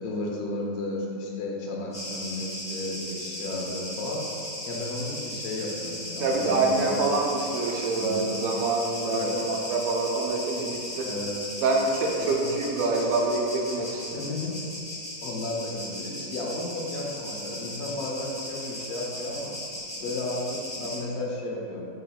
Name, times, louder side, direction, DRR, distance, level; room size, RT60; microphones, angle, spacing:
voice 1, 0.0-4.2 4.7-7.1 8.0-8.3 9.0-9.6 11.0-11.4 12.2-12.5 14.1-14.5 15.2-19.5 20.0-21.9, left 2 dB, 90° left, -2 dB, 1.2 m, -33 dB
sound 1, 1.9-21.0, left 1 dB, 5° left, 0.6 m, -37 dB
voice 2, 6.2-11.1 11.6-14.2, right 3 dB, 70° right, 0 dB, 1.0 m, -26 dB
4.8 x 3.4 x 2.3 m, 2.6 s
omnidirectional pair, 1.6 m